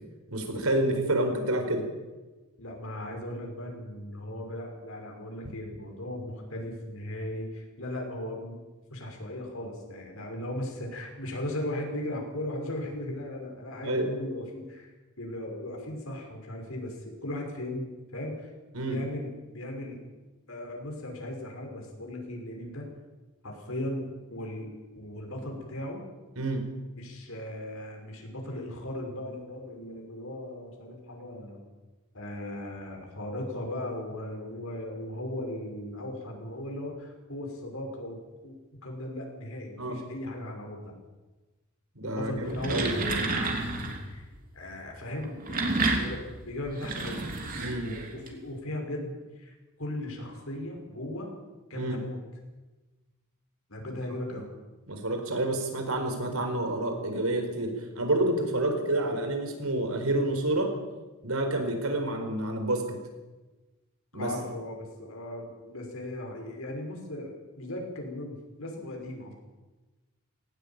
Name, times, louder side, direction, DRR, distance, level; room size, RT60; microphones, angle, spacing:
voice 1, 0.3-1.9 13.8-14.1 18.7-19.0 26.4-26.7 39.8-40.0 42.0-42.9 47.6-47.9 51.7-52.0 54.9-60.7 61.2-63.0 64.1-64.3, right 1 dB, 80° right, 5 dB, 4.6 m, -28 dB
voice 2, 2.6-8.6 8.9-14.9 15.2-18.5 18.9-20.0 20.5-22.9 23.4-26.0 26.9-31.6 32.1-38.2 38.4-38.6 38.8-40.9 42.0-44.3 44.5-47.2 47.8-51.3 51.7-52.2 53.7-54.5 64.1-69.3, left 1 dB, 70° left, 1 dB, 5.7 m, -37 dB
sound 1, 42.4-44.1 45.2-48.3, right 3 dB, 40° right, 3.3 m, -30 dB
18.5 x 18.5 x 9.0 m, 1.2 s
head